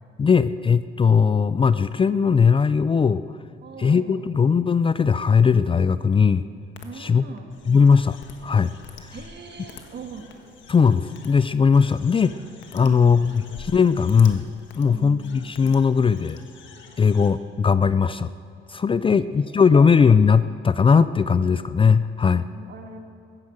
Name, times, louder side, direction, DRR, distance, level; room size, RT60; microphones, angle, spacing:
voice 1, 0.2-3.2 3.8-6.4 7.0-7.2 7.7-8.2 8.4-8.7 10.7-12.4 12.7-14.5 14.8-16.4 17.0-18.3 18.7-22.4, left 6 dB, 25° left, 14 dB, 0.4 m, -19 dB
voice 2, 3.6-4.3 6.8-7.5 9.1-10.3 12.8-13.3 14.9-15.4 19.1-19.6 22.5-23.0, right 5 dB, 60° right, 4 dB, 1.8 m, -41 dB
sound 1, 6.7-6.8 7.4-17.3, left 6 dB, 70° left, 1.5 m, -46 dB
15.5 x 9.9 x 7.3 m, 2.3 s
cardioid pair, 90°, 20 cm